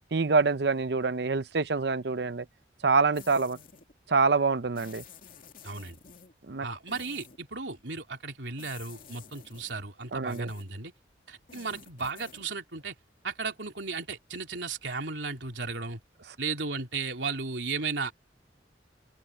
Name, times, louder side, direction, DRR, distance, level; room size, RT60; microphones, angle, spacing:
voice 1, 0.1-2.5 2.8-3.6 4.1-5.0 6.5-6.7 10.1-10.5, right 4 dB, 65° right, 0.7 m, -26 dB
sound 1, 3.1-3.9 4.7-6.3 6.9-7.4 8.6-9.8 10.3-10.8 11.4-12.5, left 7 dB, 50° left, 2.6 m, -51 dB
voice 2, 5.6-6.0 6.6-10.9 11.3-12.9 13.2-16.0 16.4-18.1, right 4 dB, 90° right, 3.3 m, -35 dB
open air
head